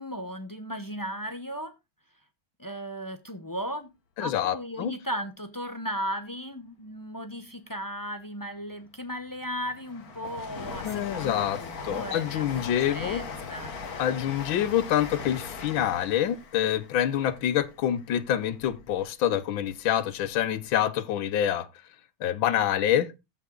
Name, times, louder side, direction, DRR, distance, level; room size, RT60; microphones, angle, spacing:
voice 1, 0.0-1.7 2.6-3.9 4.2-13.7, equal, 25° left, 0.4 m, -36 dB
voice 2, 4.2-4.9 10.8-13.2 14.0-21.7 22.2-23.1, left 11 dB, 75° left, 1.6 m, -26 dB
Train, 8.8-19.0 19.4-20.3 20.6-20.7, left 5 dB, 50° left, 1.7 m, -40 dB
sound 1, 13.0-16.7, right 1 dB, 50° right, 1.9 m, -48 dB
14.5 x 6.0 x 3.8 m
omnidirectional pair, 2.2 m